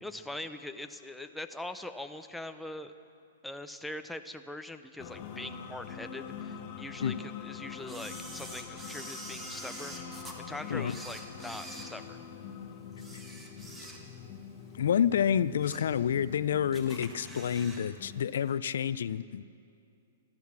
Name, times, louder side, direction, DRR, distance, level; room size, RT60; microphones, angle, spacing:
voice 1, 0.0-2.9 3.4-12.2, left 1 dB, 5° left, 8 dB, 0.5 m, -42 dB
sound 1, 5.0-18.2, left 7 dB, 40° left, 1.1 m, -44 dB
Camera, 7.9-10.4 10.8-12.5 12.9-14.3 14.7-14.8 15.3-16.0 16.3-16.4 16.7-17.9 18.1-18.2, right 1 dB, 10° right, 1.5 m, -46 dB
voice 2, 14.8-19.4, left 8 dB, 70° left, 17 dB, 0.4 m, -29 dB
14.0 x 12.0 x 7.2 m, 2.6 s
hypercardioid pair, 150°, 0 cm